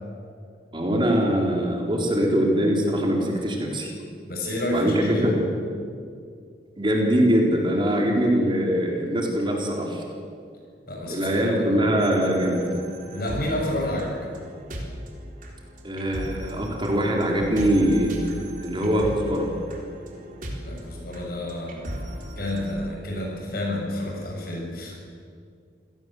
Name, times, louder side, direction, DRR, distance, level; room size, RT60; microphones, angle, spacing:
voice 1, 0.7-3.9 4.7-5.3 6.8-10.0 11.1-12.7 15.8-18.1 18.6-19.5, equal, 30° right, 0 dB, 4.1 m, -22 dB
voice 2, 4.3-5.4 10.9-12.0 13.1-14.3 20.6-22.0 22.4-25.0, left 1 dB, 55° left, 0 dB, 7.2 m, -30 dB
sound 1, 12.0-22.8, equal, 50° right, 4.0 m, -37 dB
27.5 x 18.0 x 8.0 m, 2.2 s
head